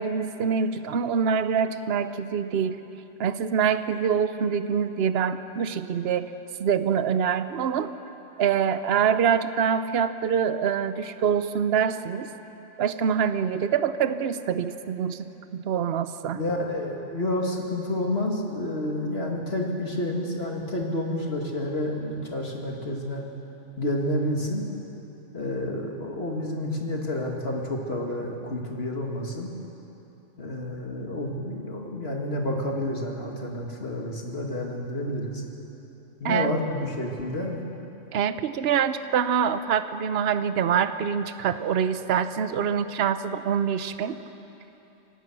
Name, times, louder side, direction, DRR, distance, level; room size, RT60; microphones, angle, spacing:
voice 1, 0.0-2.8 3.2-6.3 6.6-7.9 8.4-12.3 12.8-15.2 15.5-16.4 36.2-36.5 38.1-44.1, right 7 dB, 60° right, 11 dB, 0.9 m, -25 dB
voice 2, 16.3-23.2 23.8-24.7 25.3-29.5 30.4-35.4 36.2-37.6, left 1 dB, 55° left, 0 dB, 2.4 m, -29 dB
25.5 x 18.0 x 6.2 m, 3.0 s
omnidirectional pair, 1.3 m